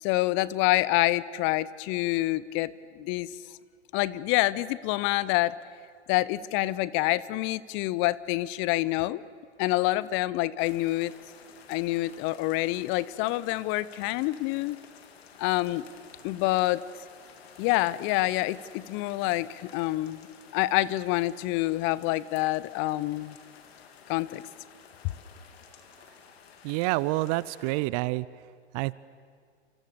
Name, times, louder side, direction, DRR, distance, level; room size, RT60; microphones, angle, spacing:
voice 1, 0.0-3.3 3.9-5.5 6.1-9.2 9.6-11.1 11.7-14.8 15.4-15.9 16.2-16.8 17.6-20.2 20.5-23.4 24.1-24.4, left 18 dB, 35° left, 19 dB, 0.8 m, -27 dB
sound 1, 10.6-27.8, left 7 dB, 60° left, 3.2 m, -53 dB
voice 2, 26.6-28.3 28.7-28.9, right 20 dB, 35° right, 20 dB, 0.6 m, -27 dB
28.5 x 27.0 x 6.9 m, 2.1 s
figure-of-eight pair, 105°, 34 cm